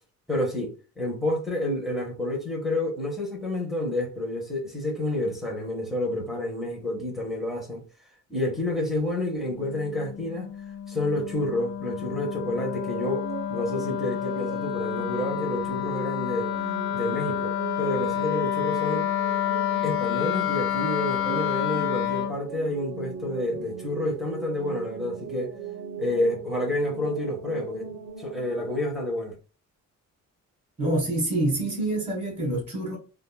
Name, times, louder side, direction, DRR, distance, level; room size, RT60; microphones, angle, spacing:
voice 1, 0.3-7.8 8.3-16.5 16.9-19.1 19.8-25.5 26.0-29.3, left 1 dB, ahead, 0.6 m, -29 dB
Wind instrument woodwind instrument, 9.4-22.4, left 11 dB, 45° left, 0.5 m, -29 dB
sound 1, 12.5-28.8, right 6 dB, 85° right, 0.5 m, -39 dB
voice 2, 30.8-33.0, right 1 dB, 20° right, 1.3 m, -26 dB
3.4 x 2.2 x 2.2 m
cardioid pair, 175°, 31 cm